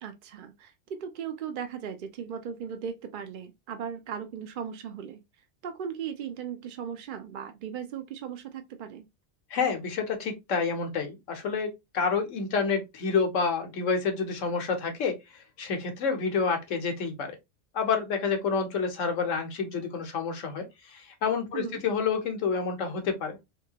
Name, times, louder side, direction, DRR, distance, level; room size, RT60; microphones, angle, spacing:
voice 1, 0.0-5.2 5.6-9.0 21.5-21.8, right 7 dB, 60° right, 0.5 m, -37 dB
voice 2, 9.5-17.3 17.7-23.4, left 5 dB, 80° left, 1.3 m, -29 dB
3.6 x 2.7 x 2.8 m
omnidirectional pair, 1.3 m